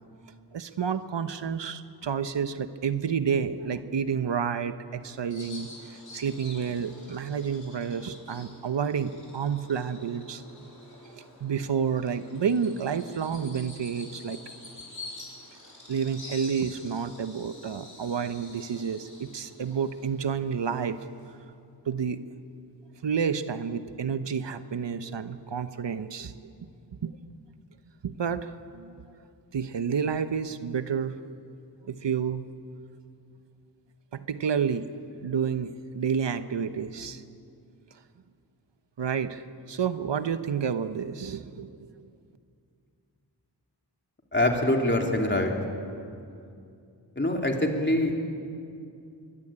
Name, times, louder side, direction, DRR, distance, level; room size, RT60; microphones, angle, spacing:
voice 1, 0.5-10.4 11.1-14.4 15.9-21.0 21.8-22.2 23.0-26.3 27.0-27.2 28.0-29.1 29.5-31.2 31.8-32.5 34.1-34.8 35.2-37.2 39.0-41.9, right 7 dB, 85° right, 11 dB, 1.0 m, -30 dB
Bird vocalization bird call bird song, 5.3-21.3, left 2 dB, 45° left, 6.4 m, -48 dB
voice 2, 44.3-45.5 47.2-48.2, left 1 dB, 25° left, 1 dB, 3.5 m, -24 dB
23.0 x 21.5 x 8.8 m, 2.5 s
wide cardioid pair, 60°, 42 cm